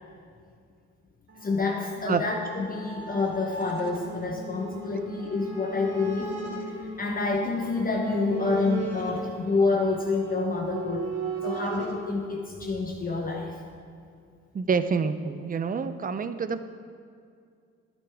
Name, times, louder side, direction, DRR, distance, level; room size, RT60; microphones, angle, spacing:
sound 1, 1.3-11.9, right 2 dB, 55° right, 2.8 m, -37 dB
voice 1, 1.4-6.4 6.8-11.1 11.4-13.5, left 3 dB, 30° left, 1 dB, 1.0 m, -28 dB
voice 2, 14.5-16.6, right 5 dB, 30° right, 11 dB, 0.5 m, -27 dB
13.5 x 9.1 x 3.5 m, 2.3 s
cardioid pair, 90°, 30 cm